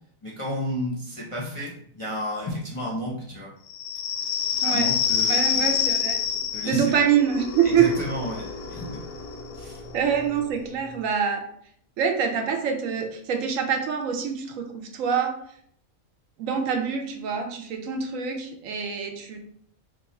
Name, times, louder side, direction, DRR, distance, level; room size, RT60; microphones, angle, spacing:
voice 1, 0.2-3.5 4.6-5.7 6.5-6.9 7.6-9.1 9.5-9.8, left 1 dB, 40° left, -5 dB, 0.4 m, -32 dB
sound 1, 3.7-11.0, left 7 dB, 85° left, 1.0 m, -28 dB
voice 2, 4.6-4.9 5.3-6.2 6.7-7.9 9.9-11.5 12.0-15.4 16.4-19.4, right 7 dB, 75° right, 4 dB, 1.0 m, -25 dB
3.0 x 2.3 x 4.0 m, 0.65 s
omnidirectional pair, 1.4 m